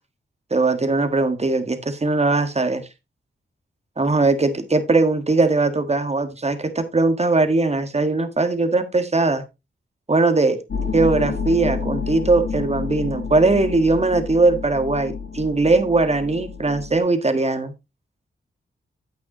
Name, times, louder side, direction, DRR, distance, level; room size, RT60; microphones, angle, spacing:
voice 1, 0.5-2.8 4.0-9.4 10.1-10.6 10.9-17.7, right 3 dB, 30° right, 9 dB, 1.7 m, -20 dB
sound 1, 10.7-17.0, left 5 dB, 80° left, 5.3 m, -29 dB
9.3 x 8.5 x 3.0 m, 0.24 s
cardioid pair, 65°, 21 cm